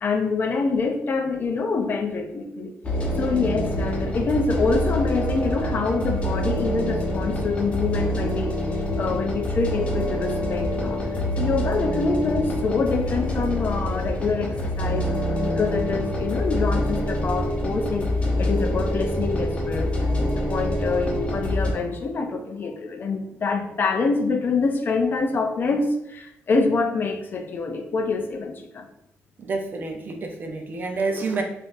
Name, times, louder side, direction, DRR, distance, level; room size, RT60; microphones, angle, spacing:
voice 1, 0.0-2.7 3.2-11.0 11.4-15.1 15.4-18.1 18.4-19.9 20.3-28.8 31.1-31.2, left 4 dB, 45° left, 5 dB, 0.4 m, -25 dB
sound 1, 2.8-21.7, equal, 25° left, 0.8 m, -26 dB
voice 2, 29.4-31.4, right 3 dB, 40° right, 3 dB, 0.5 m, -28 dB
3.7 x 2.5 x 2.5 m, 0.78 s
cardioid pair, 125°, 5 cm